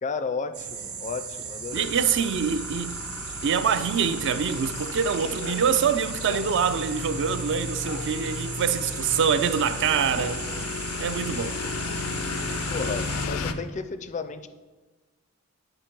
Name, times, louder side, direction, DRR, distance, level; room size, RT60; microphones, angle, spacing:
voice 1, 0.0-2.0 12.7-14.5, left 4 dB, 35° left, 0.4 m, -33 dB
sound 1, 0.5-13.3, right 7 dB, 80° right, 1.0 m, -37 dB
sound 2, 1.7-13.5, left 4 dB, 90° left, 0.5 m, -34 dB
voice 2, 1.7-3.0 3.4-10.5 11.0-11.6, right 7 dB, 55° right, 0.4 m, -25 dB
8.7 x 5.0 x 4.5 m
head